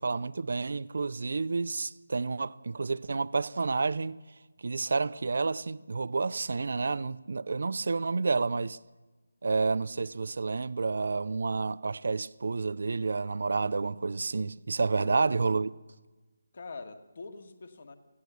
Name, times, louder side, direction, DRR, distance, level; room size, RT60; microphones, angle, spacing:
voice 1, 0.0-4.2 4.6-8.8 9.4-15.7, right 4 dB, 50° right, 0.6 m, -30 dB
voice 2, 14.8-15.2 16.5-17.9, left 3 dB, 45° left, 1.9 m, -45 dB
25.5 x 16.0 x 7.2 m
figure-of-eight pair, 150°, 0 cm